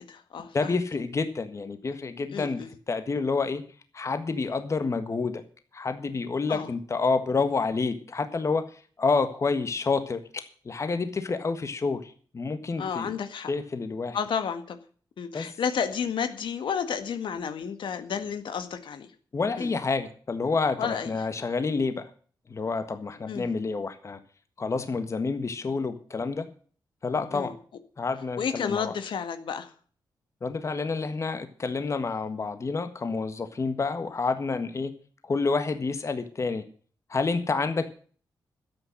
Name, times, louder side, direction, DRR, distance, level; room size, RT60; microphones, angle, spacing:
voice 1, 0.0-0.8 2.3-2.7 6.5-6.7 12.8-13.5 14.1-14.8 15.2-19.1 19.6-19.7 20.8-21.1 23.3-23.5 27.3-27.5 28.4-29.7, left 7 dB, 85° left, 9 dB, 1.8 m, -31 dB
voice 2, 0.5-3.6 3.9-5.4 5.7-8.6 9.0-13.1 13.5-14.2 15.3-15.5 19.3-22.1 22.5-24.2 24.6-26.5 27.0-27.5 28.0-28.9 30.4-34.9 35.2-36.6 37.1-37.9, left 4 dB, 40° left, 9 dB, 1.6 m, -28 dB
12.5 x 8.7 x 7.7 m, 0.43 s
wide cardioid pair, 130°, 8 cm